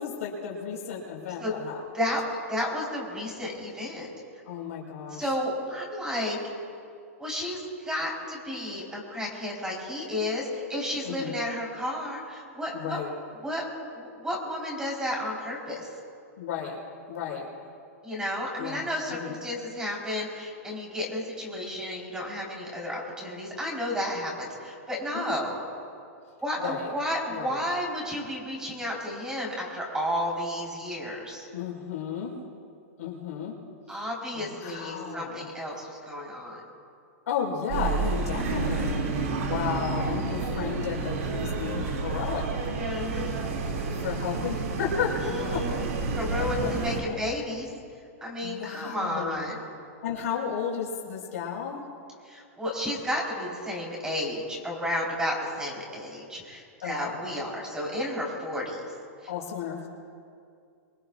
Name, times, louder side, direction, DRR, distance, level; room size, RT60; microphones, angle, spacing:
voice 1, 0.0-1.8 4.4-5.3 11.0-11.3 12.7-13.1 16.4-16.8 17.1-17.5 18.6-19.3 25.1-25.3 26.6-26.9 27.3-27.6 31.5-32.3 33.0-33.5 34.3-35.5 37.3-42.6 44.0-45.2 45.5-45.6 46.6-46.7 47.1-47.2 48.4-49.4 50.0-51.8 56.8-57.1 59.3-59.9, left 7 dB, 75° left, -2 dB, 4.9 m, -33 dB
voice 2, 2.5-4.1 5.1-6.4 7.2-13.0 13.4-13.6 13.9-15.9 18.0-25.6 26.4-31.5 33.9-36.6 42.8-43.3 45.2-45.8 46.1-47.7 48.2-49.6 52.2-58.8, left 1 dB, 10° right, -3 dB, 4.2 m, -32 dB
sound 1, 37.7-47.0, right 4 dB, 65° right, 2.6 m, -30 dB
24.5 x 20.0 x 2.5 m, 2.4 s
hypercardioid pair, 130°, 8 cm